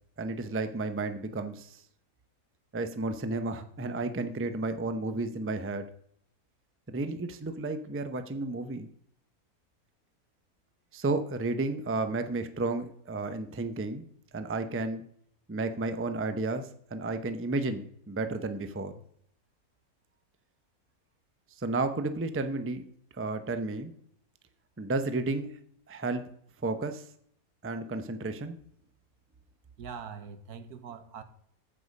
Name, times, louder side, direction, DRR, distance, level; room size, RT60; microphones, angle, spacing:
voice 1, 0.2-1.8 2.7-5.9 6.9-8.9 10.9-14.0 14.3-15.0 15.5-19.0 21.6-22.8 23.2-23.9 24.8-25.6 25.9-26.2 26.6-27.1 27.6-28.6, right 3 dB, 15° right, 0.4 m, -32 dB
voice 2, 29.8-31.2, right 6 dB, 90° right, 1.5 m, -43 dB
14.5 x 5.6 x 5.3 m
omnidirectional pair, 1.6 m